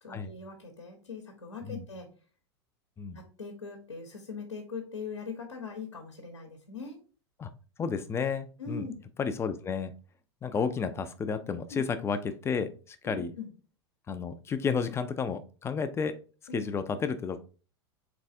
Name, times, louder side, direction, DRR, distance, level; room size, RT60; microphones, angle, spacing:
voice 1, 0.0-2.1 3.1-7.0 8.6-9.1 11.7-11.8 13.0-13.5 16.5-16.6, left 4 dB, 80° left, 2 dB, 0.9 m, -41 dB
voice 2, 7.8-8.9 9.2-9.9 10.4-13.3 14.1-16.2 16.5-17.4, left 6 dB, 20° left, 10 dB, 0.4 m, -32 dB
3.9 x 3.5 x 2.6 m, 0.36 s
figure-of-eight pair, 90°, 15 cm